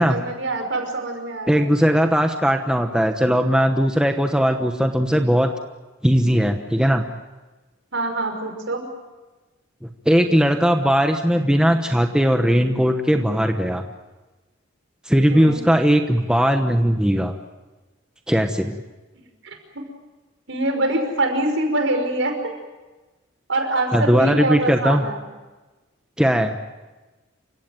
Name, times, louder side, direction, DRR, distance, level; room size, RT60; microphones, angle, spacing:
voice 1, 0.0-1.6 7.9-8.9 15.3-15.6 19.4-19.8 20.5-22.5 23.5-25.2, right 2 dB, 70° right, 4 dB, 5.7 m, -24 dB
voice 2, 1.5-5.5 6.0-7.0 9.8-13.9 15.0-17.3 18.3-18.8 23.9-25.1 26.2-26.6, equal, 5° right, 5 dB, 1.0 m, -18 dB
28.5 x 16.5 x 9.2 m, 1.2 s
head